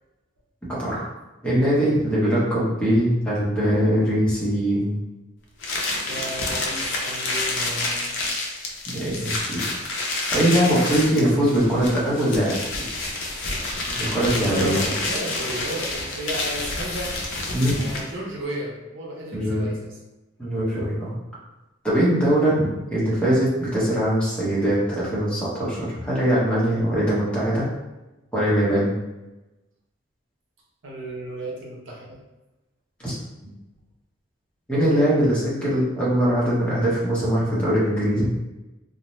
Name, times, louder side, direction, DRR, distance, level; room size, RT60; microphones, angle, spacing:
voice 1, 0.7-1.0 1.4-5.0 8.9-9.6 10.3-12.6 14.0-15.0 17.5-17.8 19.3-19.7 20.4-21.1 21.8-27.7 28.3-28.9 33.0-33.1 34.7-38.3, equal, 5° left, -9 dB, 0.7 m, -21 dB
sound 1, 5.6-18.2, left 2 dB, 65° left, 0.5 m, -28 dB
voice 2, 6.0-8.1 14.5-17.2 17.7-20.0 30.8-32.2, right 1 dB, 70° right, -3 dB, 0.7 m, -34 dB
2.6 x 2.1 x 3.0 m, 1.0 s
head